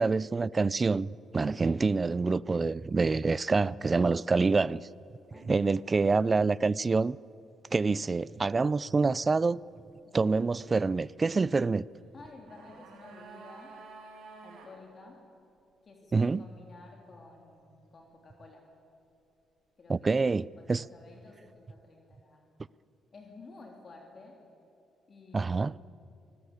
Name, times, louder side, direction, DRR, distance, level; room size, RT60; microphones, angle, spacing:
voice 1, 0.0-4.9 5.4-7.2 7.7-9.6 10.1-11.9 16.1-16.4 19.9-20.8 25.3-25.7, right 4 dB, 30° right, 0.4 m, -26 dB
voice 2, 5.3-6.0 12.1-13.7 14.4-15.2 15.8-18.6 19.8-20.0 20.6-22.6 23.1-24.4 25.1-25.7, left 3 dB, 40° left, 3.2 m, -52 dB
sound 1, 12.1-14.7 15.0-15.1, right 4 dB, 85° right, 5.5 m, -50 dB
24.5 x 19.0 x 8.4 m
cardioid pair, 90°, 0 cm